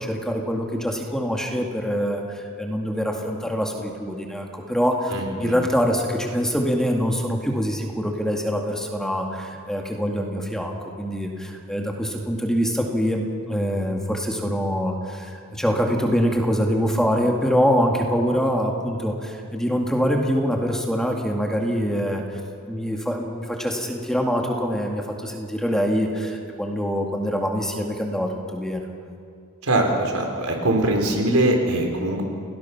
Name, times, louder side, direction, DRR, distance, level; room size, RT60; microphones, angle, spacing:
voice 1, 0.0-22.4 22.7-28.9, equal, 5° left, 1 dB, 2.1 m, -24 dB
voice 2, 5.1-5.5 29.6-32.2, right 1 dB, 85° right, 2 dB, 4.1 m, -22 dB
29.0 x 19.0 x 6.0 m, 2.4 s
head